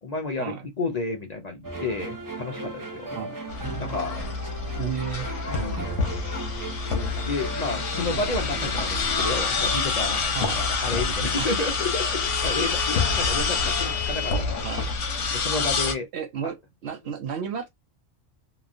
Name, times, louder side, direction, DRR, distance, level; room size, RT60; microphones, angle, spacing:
voice 1, 0.0-3.2 3.8-4.2 5.5-5.9 7.2-14.7 15.3-16.1 16.4-16.5, left 3 dB, 50° left, 0.5 m, -31 dB
sound 1, 1.6-9.9, right 3 dB, 30° right, 0.3 m, -36 dB
sound 2, 3.5-15.9, left 4 dB, 80° left, 1.1 m, -27 dB
voice 2, 4.8-5.3 10.3-10.6 11.4-11.6 14.6-14.9 16.1-16.5 16.8-17.7, right 8 dB, 70° right, 0.9 m, -32 dB
2.9 x 2.3 x 2.4 m
omnidirectional pair, 1.2 m